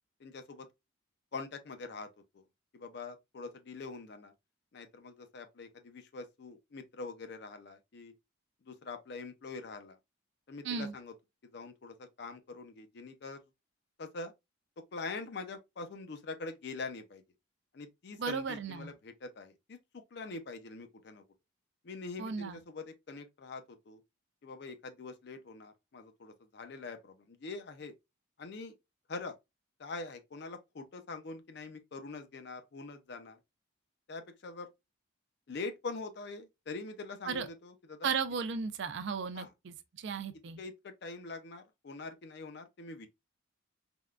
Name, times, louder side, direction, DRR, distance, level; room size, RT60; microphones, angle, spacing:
voice 1, 0.2-0.7 1.3-2.1 2.7-4.3 4.7-8.1 8.7-10.0 10.5-11.1 11.5-13.4 14.0-14.3 14.9-17.2 17.7-21.2 21.8-24.0 24.4-27.9 28.4-28.7 29.1-29.4 29.8-33.4 34.1-34.7 35.5-38.1 39.3-39.5 40.6-43.1, left 3 dB, 55° left, 0.4 m, -44 dB
voice 2, 18.2-18.9 22.2-22.6 37.3-37.5 38.0-40.6, right 5 dB, 60° right, 0.4 m, -35 dB
3.5 x 2.2 x 2.3 m
head